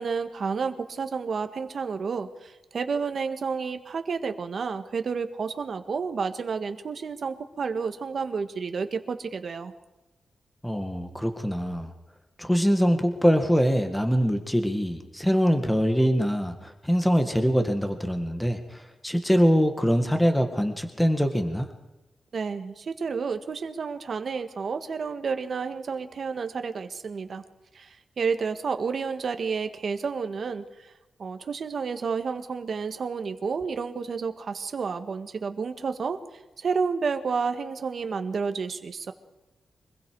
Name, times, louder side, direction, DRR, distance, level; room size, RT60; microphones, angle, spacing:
voice 1, 0.0-9.7 22.3-27.4 27.7-30.9 31.2-36.2 36.6-39.1, right 5 dB, 55° right, 8 dB, 1.7 m, -30 dB
voice 2, 10.6-11.9 12.4-21.7, equal, 5° left, 6 dB, 1.9 m, -23 dB
25.0 x 21.5 x 4.8 m, 1.0 s
wide cardioid pair, 125°, 0 cm